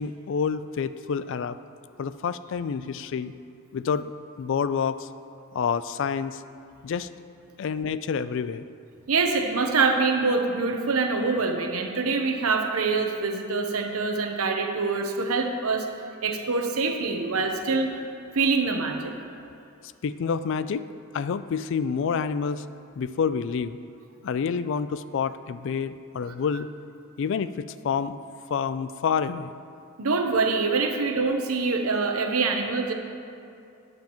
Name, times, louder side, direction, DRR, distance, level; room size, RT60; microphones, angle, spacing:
voice 1, 0.0-1.6 2.0-3.3 3.7-4.1 4.4-5.1 5.5-6.4 6.8-7.1 7.6-8.6 20.0-20.9 21.1-22.6 23.0-23.8 24.2-26.7 27.2-28.2 28.5-29.5, left 6 dB, 60° left, 13 dB, 0.3 m, -28 dB
voice 2, 9.1-15.9 16.2-17.9 18.3-19.1 30.0-32.9, right 4 dB, 90° right, 4 dB, 0.8 m, -25 dB
12.5 x 9.3 x 3.0 m, 2.5 s
head